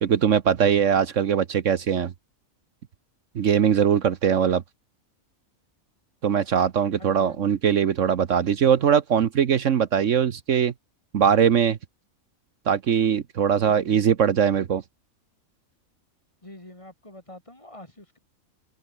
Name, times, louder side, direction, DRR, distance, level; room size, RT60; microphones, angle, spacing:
voice 1, 0.0-2.1 3.3-4.6 6.2-10.7 11.1-11.8 12.7-14.8, right 8 dB, 65° right, 1.3 m, -21 dB
voice 2, 7.0-7.6 13.6-14.1 16.4-18.2, left 1 dB, 20° left, 3.5 m, -45 dB
open air
omnidirectional pair, 1.4 m